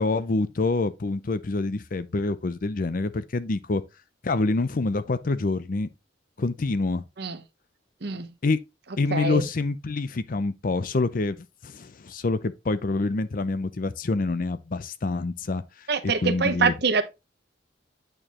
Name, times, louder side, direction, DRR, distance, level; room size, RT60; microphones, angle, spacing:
voice 1, 0.0-3.8 4.2-5.9 6.4-7.0 8.4-8.6 9.0-11.4 11.6-16.7, left 3 dB, 45° left, 0.5 m, -26 dB
voice 2, 9.1-9.4 15.9-17.0, right 5 dB, 60° right, 0.8 m, -24 dB
8.8 x 4.5 x 2.9 m
head